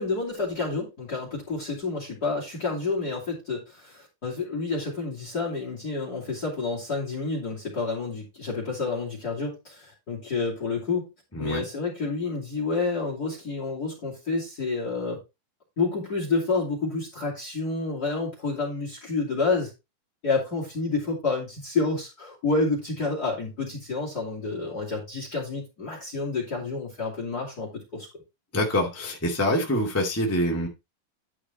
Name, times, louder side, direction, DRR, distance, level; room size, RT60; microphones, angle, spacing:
voice 1, 0.0-11.1 11.4-15.2 15.8-19.7 20.2-28.1, left 3 dB, 30° left, 0 dB, 2.7 m, -29 dB
voice 2, 11.3-11.6 28.5-30.7, left 1 dB, 5° left, -1 dB, 1.4 m, -25 dB
11.0 x 5.0 x 4.1 m, 0.24 s
omnidirectional pair, 4.1 m